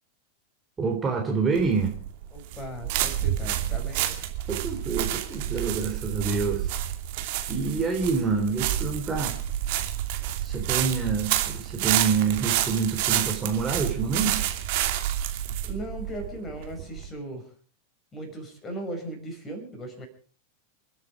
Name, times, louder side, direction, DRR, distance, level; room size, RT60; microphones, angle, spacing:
voice 1, 0.8-1.9 4.5-6.8 7.5-9.3 10.4-14.4, right 5 dB, 20° right, 2 dB, 3.3 m, -27 dB
sound 1, 1.6-17.1, right 12 dB, 50° right, 2.6 m, -29 dB
voice 2, 2.3-4.2 15.6-17.5 18.1-20.1, right 1 dB, 20° left, 5 dB, 6.0 m, -37 dB
28.5 x 9.7 x 4.9 m, 0.42 s
figure-of-eight pair, 90°, 0 cm